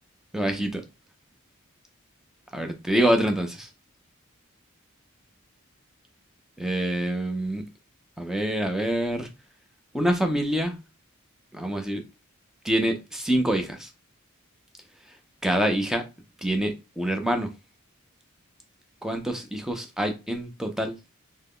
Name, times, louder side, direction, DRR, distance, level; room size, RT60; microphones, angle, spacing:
voice 1, 0.3-0.8 2.5-3.7 6.6-7.6 8.2-9.3 9.9-10.8 11.5-12.0 12.6-13.9 15.4-16.0 16.4-17.5 19.0-20.9, right 1 dB, ahead, 0.5 m, -26 dB
3.5 x 2.1 x 3.6 m
head